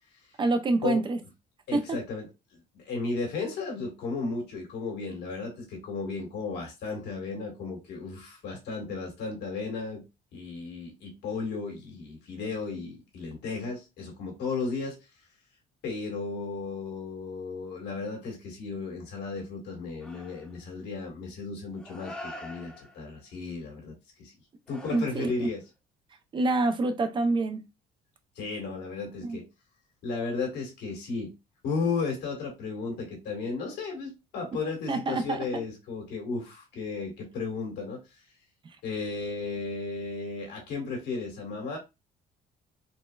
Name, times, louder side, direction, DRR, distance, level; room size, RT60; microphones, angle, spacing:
voice 1, 0.4-1.2 1.7-2.0 24.9-25.5 26.3-27.6 29.2-29.4 34.9-35.6, right 2 dB, 30° right, 0.4 m, -27 dB
voice 2, 1.7-2.3 2.5-10.0 10.3-15.0 15.8-24.3 24.7-25.6 28.3-29.5 30.0-31.3 31.6-38.0 38.8-41.8, left 4 dB, 85° left, 1.6 m, -34 dB
sound 1, 20.0-20.7 21.7-23.2 24.7-25.6, left 1 dB, 5° left, 0.7 m, -45 dB
4.0 x 2.1 x 2.3 m
cardioid pair, 110°, 17 cm